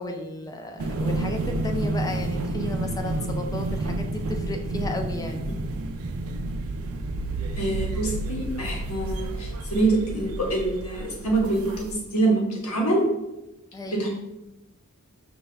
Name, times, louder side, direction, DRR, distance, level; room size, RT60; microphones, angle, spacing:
voice 1, 0.0-5.5 13.7-14.1, left 2 dB, 15° left, 4 dB, 0.4 m, -34 dB
sound 1, 0.8-11.9, right 2 dB, 75° right, 0.4 m, -30 dB
voice 2, 7.6-13.1 13.9-14.1, right 2 dB, 80° left, -1 dB, 1.1 m, -25 dB
5.3 x 2.4 x 3.3 m, 0.96 s
head